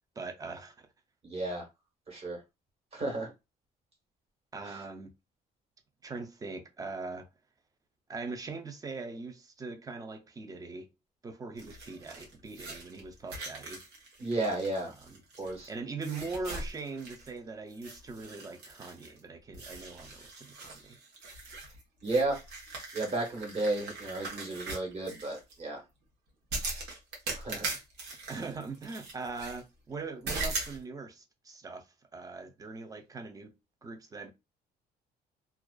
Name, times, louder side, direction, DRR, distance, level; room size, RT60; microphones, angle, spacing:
voice 1, 0.2-0.9 4.5-5.1 6.0-7.3 8.1-10.9 11.2-13.8 14.9-15.2 15.7-21.0 27.5-27.7 28.3-31.9 32.1-33.5 33.8-34.3, right 3 dB, 20° right, 0.4 m, -41 dB
voice 2, 1.2-1.6 2.1-2.4 2.9-3.3 14.2-14.9 15.4-15.7 22.0-22.4 22.9-25.8 27.4-27.7, right 2 dB, 35° right, 1.2 m, -32 dB
sound 1, 11.6-15.7 16.0-17.4 17.7-19.2 19.5-25.5 26.5-29.6 30.3-30.8, right 2 dB, 85° right, 1.0 m, -40 dB
2.4 x 2.3 x 2.2 m
cardioid pair, 110°, 17 cm